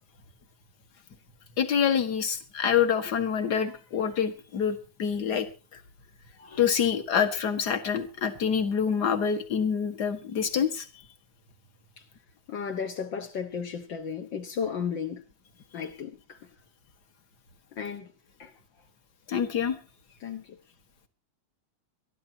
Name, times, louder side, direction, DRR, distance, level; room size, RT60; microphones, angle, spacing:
voice 1, 1.6-5.5 5.7-5.8 6.4-10.9 19.3-19.8, left 7 dB, 40° left, 1.6 m, -26 dB
voice 2, 12.5-15.2 15.7-16.5 17.7-18.1 18.4-18.5 20.2-20.6, left 7 dB, 60° left, 1.2 m, -34 dB
23.5 x 13.5 x 2.8 m
omnidirectional pair, 3.6 m